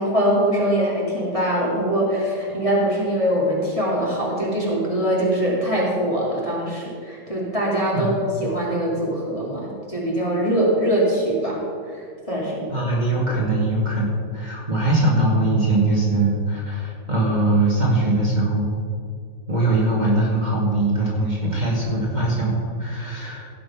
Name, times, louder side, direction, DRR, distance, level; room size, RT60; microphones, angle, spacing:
voice 1, 0.0-12.7, equal, 20° left, -5 dB, 2.4 m, -23 dB
voice 2, 12.7-18.7 19.5-23.5, right 2 dB, 25° right, -5 dB, 2.3 m, -21 dB
16.0 x 6.3 x 5.9 m, 2.3 s
omnidirectional pair, 2.0 m